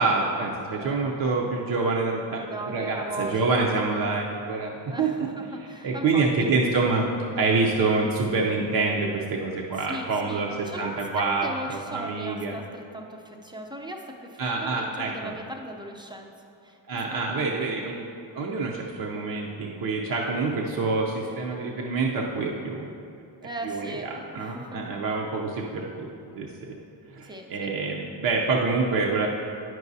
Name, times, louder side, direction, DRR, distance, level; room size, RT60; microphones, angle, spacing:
voice 1, 0.0-5.3 5.6-12.6 14.4-15.3 16.9-18.1 18.3-22.9 23.6-26.1 26.3-26.5 27.1-29.3, right 3 dB, 50° right, -1 dB, 0.6 m, -26 dB
voice 2, 0.8-1.1 2.4-3.8 4.9-6.5 9.7-16.3 16.6-16.8 17.5-17.6 23.4-25.0 27.2-27.8, right 1 dB, 10° right, 1 dB, 0.5 m, -38 dB
Mallet percussion, 6.7-9.3, left 5 dB, 50° left, 0.6 m, -45 dB
9.1 x 6.1 x 2.7 m, 2.7 s
cardioid pair, 110°, 46 cm